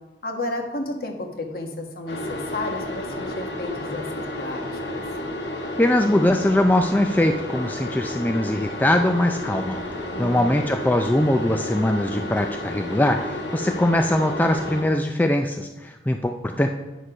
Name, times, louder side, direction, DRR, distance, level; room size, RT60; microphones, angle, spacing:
voice 1, 0.2-5.0 10.1-10.6, left 2 dB, 55° left, 3 dB, 1.4 m, -32 dB
sound 1, 2.1-14.8, left 1 dB, 85° left, 1.4 m, -32 dB
voice 2, 5.8-9.8 10.2-16.7, left 1 dB, 10° left, 4 dB, 0.4 m, -21 dB
9.6 x 6.5 x 5.0 m, 1.1 s
head